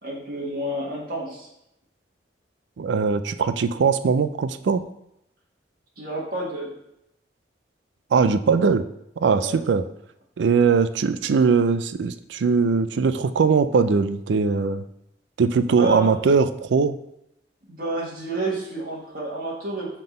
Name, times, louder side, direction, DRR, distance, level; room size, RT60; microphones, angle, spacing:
voice 1, 0.0-1.5 6.0-6.7 9.4-9.6 15.7-16.1 17.7-19.9, right 2 dB, 55° right, -5 dB, 1.6 m, -30 dB
voice 2, 2.8-4.8 8.1-8.8 9.2-9.9 10.4-14.8 15.4-17.0, right 5 dB, 85° right, 12 dB, 0.4 m, -20 dB
5.8 x 3.8 x 5.1 m, 0.80 s
head